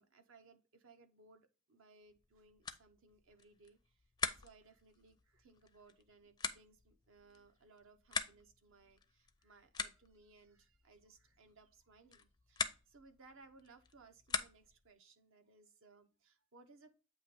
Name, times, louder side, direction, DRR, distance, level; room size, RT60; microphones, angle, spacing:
voice 1, 0.0-17.0, right 3 dB, 60° right, 0.8 m, -64 dB
sound 1, 2.1-14.9, left 5 dB, 20° left, 0.4 m, -45 dB
8.3 x 2.9 x 5.2 m
head